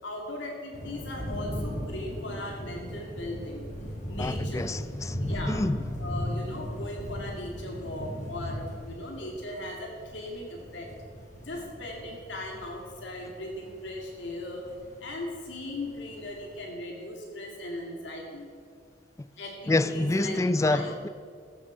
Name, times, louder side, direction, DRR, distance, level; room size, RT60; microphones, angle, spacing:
voice 1, 0.0-3.6 4.1-4.6 5.2-5.6 6.0-10.9 11.4-14.6 15.0-18.4 19.4-20.9, left 1 dB, 70° left, 2.3 m, -38 dB
sound 1, 0.7-16.6, equal, 40° left, 3.1 m, -37 dB
voice 2, 4.2-5.2 5.5-5.8 19.7-21.1, left 2 dB, 15° left, 0.3 m, -27 dB
14.0 x 8.5 x 6.8 m
head